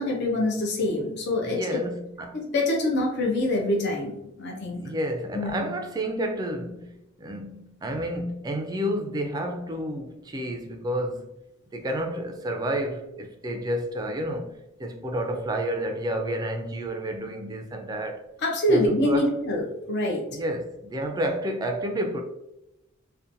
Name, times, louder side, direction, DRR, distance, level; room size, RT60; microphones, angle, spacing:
voice 1, 0.0-1.8 2.3-4.9 5.3-5.6 18.4-20.2, left 1 dB, 55° left, 0.5 m, -25 dB
voice 2, 1.4-2.4 4.8-11.3 11.7-18.2 18.7-19.4 20.3-22.2, right 1 dB, 20° right, 0.3 m, -30 dB
2.7 x 2.1 x 2.5 m
head